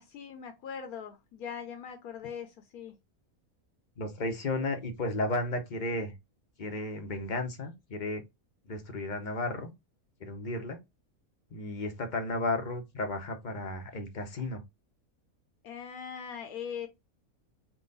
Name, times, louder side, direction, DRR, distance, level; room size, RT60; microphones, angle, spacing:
voice 1, 0.0-2.9 15.6-16.9, left 7 dB, 80° left, 1.1 m, -41 dB
voice 2, 4.0-6.1 6.6-8.2 8.7-9.7 10.2-10.8 11.5-14.6, left 2 dB, 45° left, 0.6 m, -33 dB
3.8 x 2.3 x 3.7 m
omnidirectional pair, 1.5 m